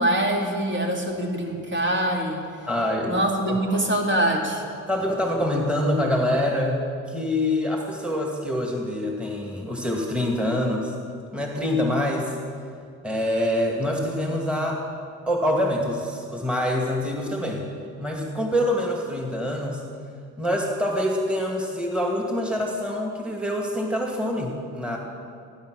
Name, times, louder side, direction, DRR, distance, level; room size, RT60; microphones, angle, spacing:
voice 1, 0.0-2.4 3.1-4.6, right 1 dB, 40° right, 0 dB, 2.8 m, -24 dB
voice 2, 2.7-3.2 3.5-3.8 4.9-6.8 7.1-10.9 11.3-12.3 13.0-14.8 15.3-17.7 18.0-19.8 20.4-25.0, left 1 dB, 5° right, -1 dB, 2.3 m, -25 dB
16.0 x 10.5 x 6.4 m, 2.3 s
cardioid pair, 90°, 30 cm